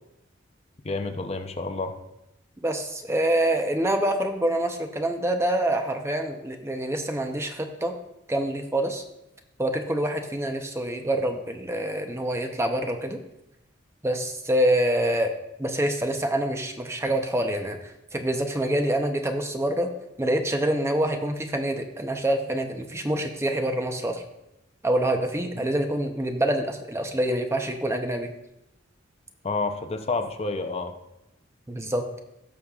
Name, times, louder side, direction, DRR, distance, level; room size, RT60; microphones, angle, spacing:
voice 1, 0.8-1.9 25.6-25.7 29.4-30.9, left 3 dB, 35° left, 6 dB, 0.7 m, -29 dB
voice 2, 2.6-7.9 8.3-9.0 9.6-13.2 14.0-15.3 15.6-19.9 20.2-24.2 24.8-28.3 31.7-32.0, right 1 dB, 15° right, 5 dB, 0.7 m, -26 dB
17.0 x 6.5 x 2.4 m, 0.90 s
head